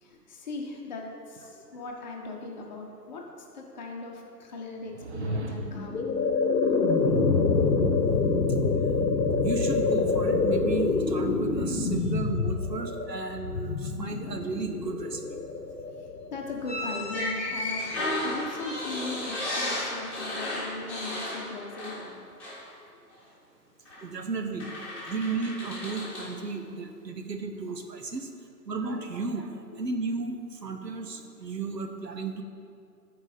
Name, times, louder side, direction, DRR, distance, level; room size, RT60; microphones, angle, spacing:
voice 1, 0.0-6.1 12.8-12.9 16.0-17.9 18.2-22.2 24.0-24.1 29.7-29.8, left 3 dB, 25° left, -1 dB, 1.0 m, -39 dB
sound 1, 4.9-6.0, right 1 dB, 45° right, 0.7 m, -34 dB
sound 2, 5.6-16.7, left 4 dB, 85° left, 1.0 m, -26 dB
voice 2, 9.4-15.2 24.0-24.7 25.1-28.3 28.7-32.4, right 4 dB, 75° right, 5 dB, 1.1 m, -34 dB
sound 3, 16.6-22.1 22.4-22.6 23.9-24.0 24.6-26.3, left 1 dB, 5° left, 1.8 m, -33 dB
13.5 x 4.8 x 4.2 m, 2.4 s
figure-of-eight pair, 140°, 50 cm